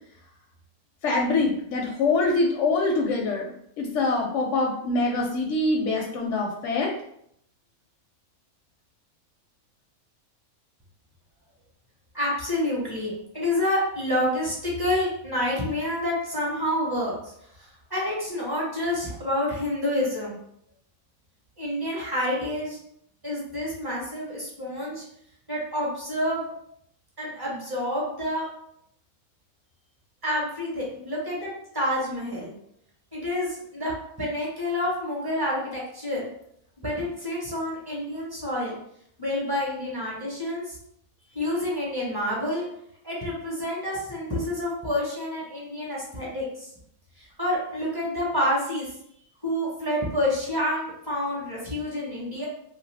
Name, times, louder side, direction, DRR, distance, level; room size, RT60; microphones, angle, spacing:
voice 1, 1.0-3.5 3.8-6.9, left 3 dB, 70° left, 0 dB, 0.8 m, -24 dB
voice 2, 12.1-17.3 17.6-20.4 21.6-22.8 23.2-25.0 25.5-26.5 27.2-28.4 30.2-32.5 33.1-33.9 34.2-36.3 36.8-38.8 39.2-40.8 41.3-42.7 43.0-46.7 47.2-48.9 49.4-52.5, left 1 dB, 20° right, -5 dB, 0.7 m, -28 dB
2.6 x 2.4 x 3.3 m, 0.71 s
omnidirectional pair, 1.6 m